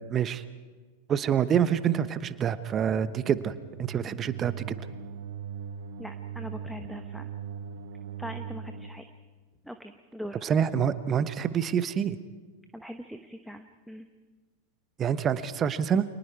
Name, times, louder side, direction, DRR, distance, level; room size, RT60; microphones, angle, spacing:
voice 1, 0.1-0.4 1.1-3.5 3.8-4.5 10.4-12.2 15.0-16.0, right 8 dB, 25° right, 14 dB, 1.1 m, -26 dB
sound 1, 3.6-8.9, right 7 dB, 50° right, 1.7 m, -40 dB
voice 2, 6.0-7.3 8.2-9.0 9.6-10.4 12.7-14.1, equal, ahead, 6 dB, 1.1 m, -41 dB
30.0 x 27.0 x 4.8 m, 1.4 s
figure-of-eight pair, 90°, 0 cm